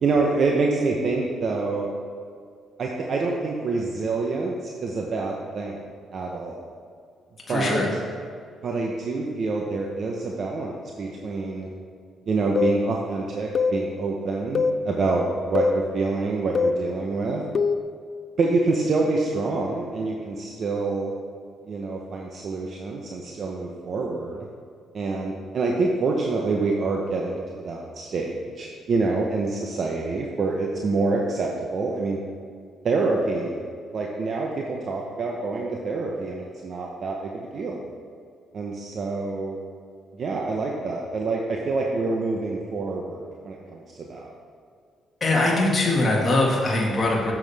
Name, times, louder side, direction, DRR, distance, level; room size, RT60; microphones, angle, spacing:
voice 1, 0.0-1.9 2.8-5.8 6.1-6.6 7.5-7.8 8.6-11.7 12.3-17.4 18.4-21.1 21.7-24.5 24.9-32.2 32.8-33.7 33.9-37.8 38.5-39.6 40.1-44.3, right 3 dB, 55° right, 0 dB, 0.8 m, -26 dB
voice 2, 7.5-7.9 45.2-47.3, left 2 dB, 30° left, -4 dB, 1.8 m, -22 dB
sound 1, 12.6-12.8 13.6-13.8 14.6-14.8 15.6-15.8 16.6-16.8 17.6-17.9, left 4 dB, 50° left, 0.4 m, -22 dB
9.4 x 7.1 x 3.5 m, 2.2 s
cardioid pair, 90°, 0 cm